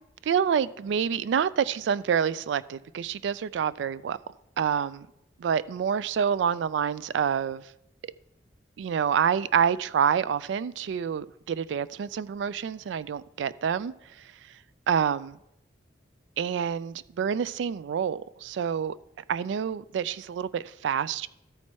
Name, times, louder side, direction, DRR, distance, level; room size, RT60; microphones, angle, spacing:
voice 1, 0.3-4.2 4.6-5.1 5.4-7.6 8.8-13.9 14.9-15.4 16.4-18.9 19.3-21.3, right 7 dB, 75° right, 0.3 m, -27 dB
13.5 x 4.6 x 4.2 m
head